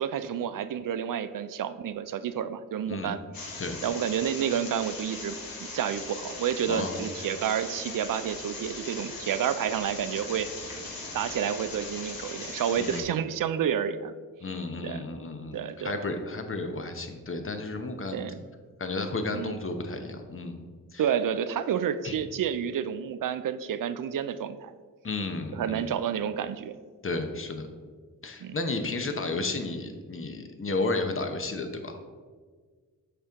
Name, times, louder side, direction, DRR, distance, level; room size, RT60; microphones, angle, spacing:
voice 1, 0.0-3.5 3.8-10.5 10.7-10.8 11.1-14.1 14.8-15.0 15.5-16.0 18.1-18.4 19.3-19.6 21.0-24.7 25.5-26.8 28.4-28.5, right 8 dB, 60° right, 12 dB, 0.5 m, -30 dB
sound 1, 3.3-13.0, left 3 dB, 65° left, 1.3 m, -39 dB
voice 2, 6.7-7.0 12.8-13.1 14.4-18.2 18.8-20.6 20.9-21.0 22.0-22.2 25.0-25.9 27.0-27.7 28.2-32.0, left 3 dB, 35° left, 6 dB, 0.9 m, -32 dB
6.8 x 4.4 x 3.7 m, 1.5 s
cardioid pair, 45°, 37 cm